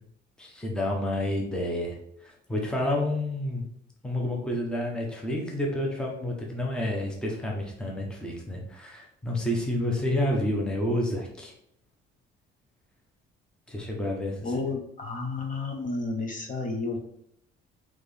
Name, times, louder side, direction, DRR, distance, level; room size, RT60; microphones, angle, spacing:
voice 1, 0.4-3.6 4.0-11.5 13.7-14.4, left 1 dB, 5° left, -1 dB, 0.7 m, -29 dB
voice 2, 14.4-17.0, left 3 dB, 40° left, 2 dB, 0.8 m, -31 dB
4.2 x 3.0 x 3.3 m, 0.73 s
cardioid pair, 150°, 21 cm